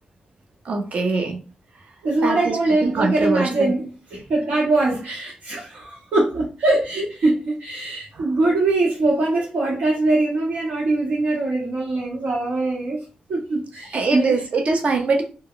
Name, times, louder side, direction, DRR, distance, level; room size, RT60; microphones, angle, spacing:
voice 1, 0.7-1.4 2.2-2.6 2.8-3.7 8.1-8.3 13.9-15.2, right 3 dB, 55° right, 4 dB, 0.6 m, -22 dB
voice 2, 2.0-13.0 13.3-14.4, right 2 dB, 80° right, -6 dB, 1.0 m, -22 dB
2.2 x 2.1 x 3.6 m, 0.34 s
cardioid pair, 100°, 3 cm